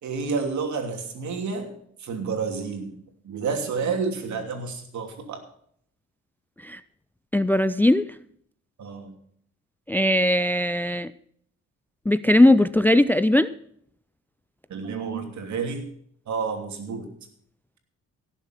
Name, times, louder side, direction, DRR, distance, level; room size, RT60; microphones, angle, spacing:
voice 1, 0.0-1.7 2.0-2.9 3.2-5.4 8.8-9.1 14.7-15.8 16.3-17.1, right 5 dB, 70° right, 4 dB, 2.9 m, -29 dB
voice 2, 7.3-8.0 9.9-11.1 12.1-13.5, left 1 dB, 5° left, 15 dB, 0.4 m, -19 dB
17.0 x 7.2 x 5.9 m, 0.64 s
cardioid pair, 90°, 30 cm